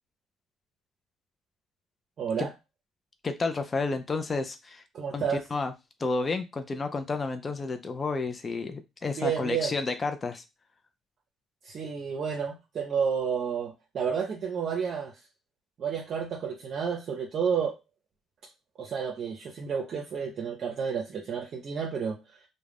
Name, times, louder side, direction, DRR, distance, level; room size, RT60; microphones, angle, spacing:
voice 1, 2.2-2.5 4.9-5.4 9.2-9.7 11.6-15.2 15.8-17.8 18.8-22.4, right 6 dB, 55° right, 1 dB, 0.5 m, -31 dB
voice 2, 3.2-4.8 5.1-5.7 6.0-10.4, left 3 dB, 35° left, 7 dB, 0.4 m, -31 dB
2.4 x 2.0 x 3.3 m, 0.24 s
cardioid pair, 85°, 0 cm